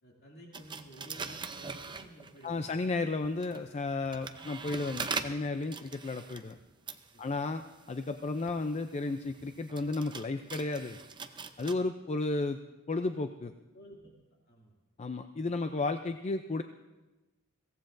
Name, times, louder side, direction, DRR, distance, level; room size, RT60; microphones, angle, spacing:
voice 1, 0.0-2.7 7.1-7.5 13.7-14.1 14.5-14.7, right 1 dB, 50° left, -3 dB, 2.5 m, -53 dB
sound 1, 0.5-2.6 3.2-11.7, right 5 dB, 20° right, 0.6 m, -42 dB
voice 2, 2.4-6.6 7.2-7.6 7.9-11.0 11.6-12.6 12.9-13.5 15.0-16.6, left 3 dB, 30° left, 8 dB, 0.4 m, -33 dB
22.5 x 16.5 x 2.6 m, 1.1 s
head